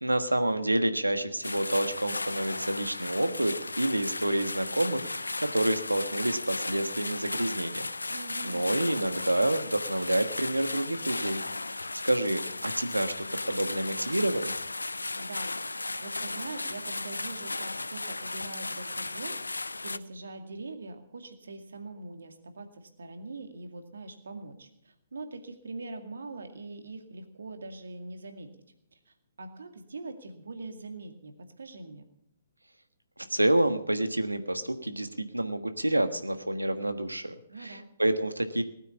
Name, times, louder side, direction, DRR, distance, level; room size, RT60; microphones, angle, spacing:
voice 1, 0.0-8.1 8.4-11.4 11.7-11.8 12.0-14.5 33.3-38.6, right 1 dB, 85° right, 10 dB, 1.4 m, -28 dB
sound 1, 1.4-20.0, left 2 dB, 80° left, 0.5 m, -35 dB
voice 2, 8.1-8.8 15.2-28.5 29.1-32.0 37.5-37.9, right 3 dB, 65° right, 6 dB, 2.2 m, -43 dB
19.0 x 9.2 x 7.1 m, 0.78 s
figure-of-eight pair, 130°, 0 cm